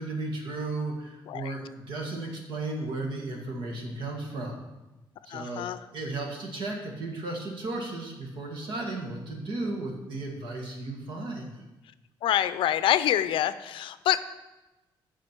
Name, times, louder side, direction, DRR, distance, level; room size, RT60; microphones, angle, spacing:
voice 1, 0.0-4.6 5.2-5.6 5.9-11.6, right 2 dB, 70° right, 1 dB, 1.9 m, -34 dB
voice 2, 5.3-5.8 12.2-14.2, left 11 dB, 80° left, 14 dB, 0.4 m, -26 dB
14.0 x 4.9 x 4.5 m, 1.0 s
cardioid pair, 165°, 9 cm